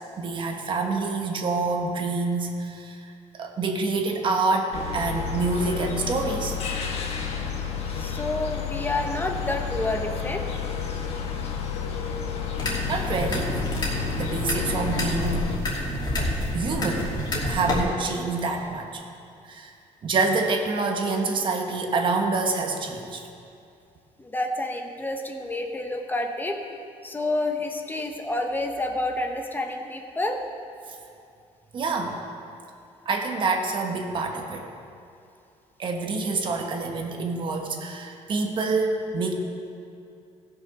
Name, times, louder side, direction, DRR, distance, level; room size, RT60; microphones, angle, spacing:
voice 1, 0.2-3.0 3.3-6.6 12.9-15.4 16.5-17.1 17.5-19.0 19.5-19.7 20.0-23.2 31.7-32.2 33.0-34.7 35.8-39.3, right 3 dB, 45° right, 3 dB, 1.3 m, -27 dB
sound 1, 4.7-15.6, left 7 dB, 60° left, 1.3 m, -31 dB
voice 2, 7.9-10.6 24.2-26.6 27.0-30.4, left 2 dB, 15° left, 3 dB, 0.8 m, -29 dB
sound 2, 12.6-17.8, left 1 dB, 40° left, 2.7 m, -29 dB
15.5 x 6.1 x 5.8 m, 2.5 s
cardioid pair, 120°, 12 cm